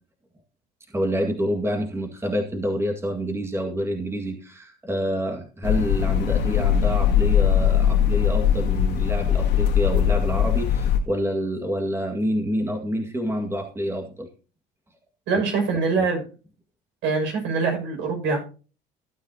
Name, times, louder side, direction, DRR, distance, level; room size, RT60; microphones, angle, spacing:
voice 1, 0.9-14.3 16.0-16.1, equal, 10° right, 3 dB, 2.0 m, -27 dB
sound 1, 5.6-11.0, left 9 dB, 60° left, 2.4 m, -20 dB
voice 2, 15.3-16.2 17.0-18.4, right 4 dB, 70° right, 2 dB, 6.3 m, -23 dB
16.0 x 9.1 x 2.9 m, 0.35 s
supercardioid pair, 80°, 20 cm